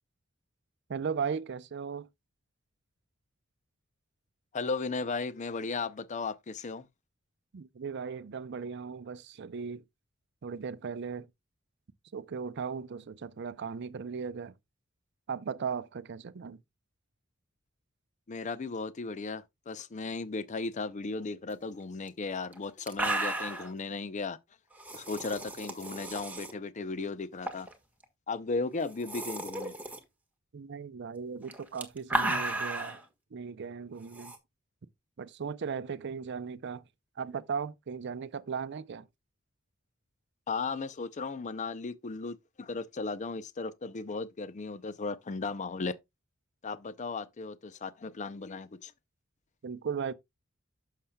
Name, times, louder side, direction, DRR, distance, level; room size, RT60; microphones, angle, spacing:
voice 1, 0.9-2.1 7.5-9.8 10.4-11.3 12.1-14.5 15.3-16.6 30.5-33.0 33.3-34.3 35.2-36.8 37.2-39.1 49.6-50.1, right 6 dB, 55° right, 0.5 m, -37 dB
voice 2, 4.5-6.9 18.3-24.4 24.9-27.7 28.3-29.7 40.5-46.0 46.6-48.9, left 4 dB, 35° left, 0.5 m, -36 dB
sound 1, 22.1-22.2 22.5-22.6 22.8-23.7 24.8-26.5 27.4-27.7 28.0-28.1 28.8-30.0 31.4-33.0 34.1-34.4, right 2 dB, 10° right, 1.4 m, -34 dB
11.0 x 6.6 x 2.2 m
head